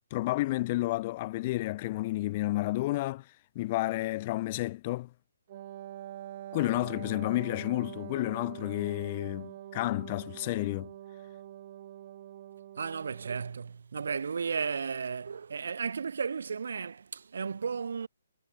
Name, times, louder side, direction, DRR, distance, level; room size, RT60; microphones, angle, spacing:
voice 1, 0.1-3.2 3.5-5.1 6.5-10.9, left 18 dB, 30° left, 1.2 m, -31 dB
Wind instrument woodwind instrument, 5.5-13.6, right 12 dB, 40° right, 3.5 m, -45 dB
voice 2, 12.8-18.1, right 6 dB, 60° right, 1.1 m, -34 dB
figure-of-eight pair, 135°, 0 cm